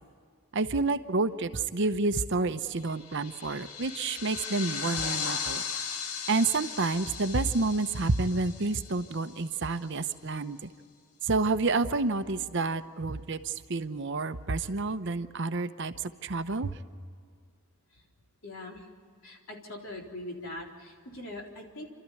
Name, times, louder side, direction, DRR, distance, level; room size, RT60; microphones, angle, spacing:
voice 1, 0.5-5.6 6.3-10.7 11.2-16.8, right 3 dB, 55° right, 10 dB, 0.8 m, -29 dB
sound 1, 2.8-9.6, left 6 dB, 85° left, 1.3 m, -37 dB
voice 2, 18.4-18.9 19.2-21.9, left 1 dB, 60° left, 0 dB, 3.9 m, -42 dB
29.0 x 13.0 x 9.6 m, 2.2 s
head